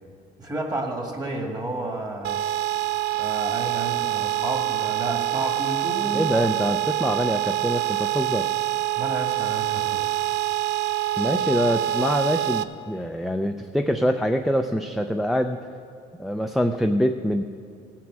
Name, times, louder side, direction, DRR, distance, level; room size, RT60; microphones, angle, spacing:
voice 1, 0.4-2.4 3.2-6.3 9.0-10.0, right 2 dB, 25° right, 2 dB, 2.0 m, -31 dB
sound 1, 2.2-12.6, right 14 dB, 80° right, 0.5 m, -25 dB
voice 2, 6.1-8.5 11.2-15.7 16.2-17.4, equal, ahead, 5 dB, 0.4 m, -24 dB
17.5 x 5.9 x 7.5 m, 2.3 s
cardioid pair, 110°, 17 cm